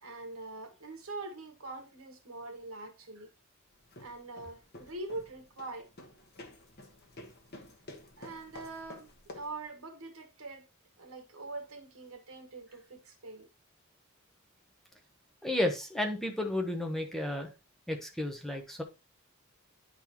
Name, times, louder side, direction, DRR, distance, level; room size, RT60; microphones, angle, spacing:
voice 1, 0.0-3.3 4.0-5.9 8.2-10.7 11.0-13.5, right 2 dB, 80° right, 1.4 m, -43 dB
sound 1, 3.7-9.6, left 1 dB, 50° left, 1.1 m, -51 dB
voice 2, 15.4-17.5 17.9-18.8, left 1 dB, ahead, 0.8 m, -32 dB
9.8 x 3.9 x 2.9 m
head